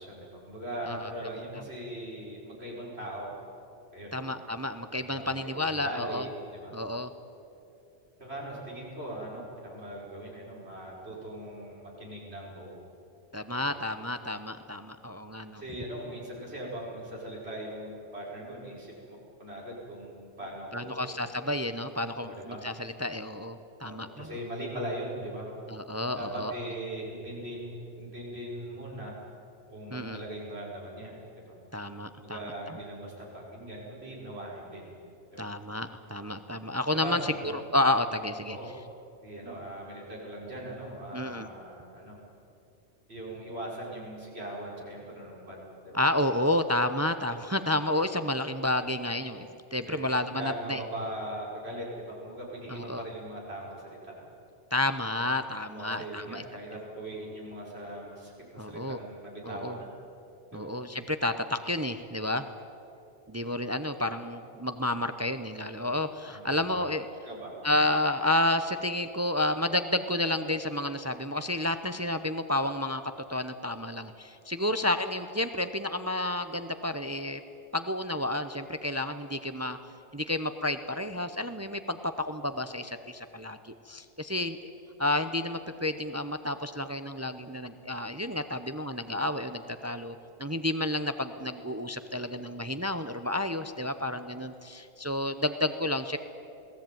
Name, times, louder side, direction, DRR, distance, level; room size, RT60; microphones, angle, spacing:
voice 1, 0.0-3.3 3.9-4.3 5.0-6.8 8.2-12.7 13.5-13.7 15.6-21.1 22.2-22.6 23.8-25.5 26.2-29.2 29.7-31.2 31.5-31.6 32.2-34.9 35.3-35.5 36.9-37.5 38.5-38.7 39.2-42.2 43.1-45.6 45.8-46.0 49.9-50.0 50.4-54.3 55.7-59.9 60.5-60.7 66.3-66.8 67.3-67.5 74.6-74.7, right 1 dB, 65° right, -4 dB, 5.8 m, -40 dB
voice 2, 4.1-6.3 6.7-7.1 13.3-15.6 20.7-24.3 25.7-26.5 29.9-30.2 31.7-32.8 35.4-38.6 41.1-41.5 45.9-50.8 52.7-53.0 54.7-56.4 58.6-59.0 59.4-59.8 60.5-62.5 63.3-67.1 67.6-73.0 73.3-77.4 77.7-79.8 80.1-84.6 85.0-96.2, left 1 dB, 15° right, 10 dB, 0.6 m, -30 dB
21.5 x 16.5 x 9.2 m, 2.8 s
omnidirectional pair, 1.2 m